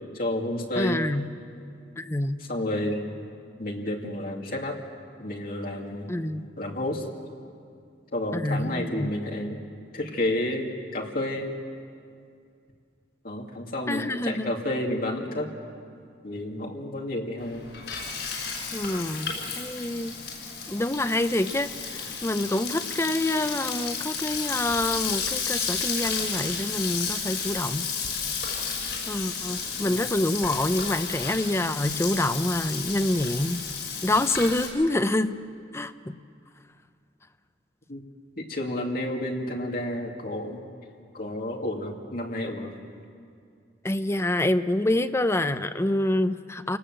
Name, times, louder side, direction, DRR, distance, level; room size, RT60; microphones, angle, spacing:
voice 1, 0.1-1.1 2.5-3.0 3.6-4.8 5.2-6.1 6.6-7.1 8.1-9.6 9.9-11.5 13.2-15.5 16.2-17.7 29.8-30.0 37.9-38.0 38.4-40.7 41.1-42.7, left 1 dB, 55° left, 0 dB, 2.6 m, -30 dB
voice 2, 0.8-1.3 2.0-2.4 6.1-6.5 8.3-9.1 13.9-14.5 18.7-20.1 20.7-27.9 29.1-33.6 34.0-35.4 35.7-36.2 43.8-46.8, left 1 dB, 15° left, 10 dB, 0.6 m, -27 dB
Frying (food), 17.4-34.7, left 5 dB, 85° left, 6.2 m, -32 dB
28.0 x 19.0 x 7.5 m, 2.3 s
head